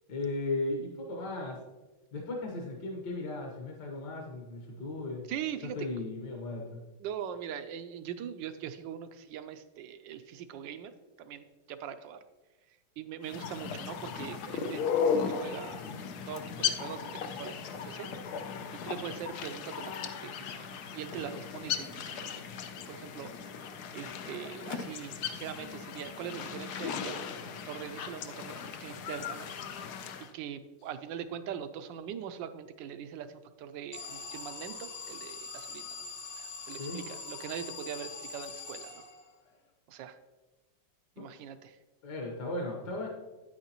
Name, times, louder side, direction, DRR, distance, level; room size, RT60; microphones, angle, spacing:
voice 1, 0.1-1.6 2.1-5.3 5.7-6.8 36.8-37.0 41.2-41.3 42.0-43.1, left 2 dB, 55° left, 0 dB, 1.6 m, -36 dB
voice 2, 5.3-5.9 7.0-10.9 11.2-12.2 13.0-15.9 16.3-18.1 18.7-22.4 22.7-23.3 23.9-29.5 30.3-35.9 36.3-39.0 39.9-40.2 41.2-41.7, right 9 dB, 75° right, 10 dB, 1.1 m, -42 dB
sound 1, 13.2-30.3, left 7 dB, 75° left, 0.9 m, -36 dB
Alarm, 33.9-39.5, left 4 dB, 90° left, 0.5 m, -43 dB
9.3 x 9.1 x 2.9 m, 1.1 s
omnidirectional pair, 2.3 m